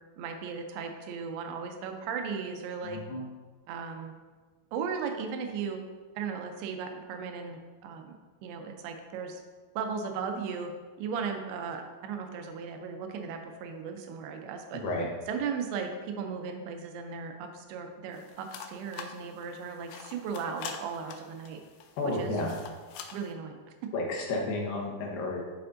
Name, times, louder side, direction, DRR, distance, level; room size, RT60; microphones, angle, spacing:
voice 1, 0.2-3.0 3.7-4.2 4.7-5.8 6.2-8.2 8.4-9.4 9.8-10.7 11.0-14.8 15.3-21.6 22.0-22.3 23.1-23.6, right 6 dB, 90° right, 5 dB, 2.6 m, -36 dB
voice 2, 2.8-3.3 14.8-15.1 22.0-22.6 23.9-25.4, left 2 dB, 75° left, -2 dB, 2.8 m, -31 dB
sound 1, 18.1-23.3, left 7 dB, 90° left, 2.6 m, -45 dB
11.0 x 4.3 x 2.6 m, 1.4 s
omnidirectional pair, 4.4 m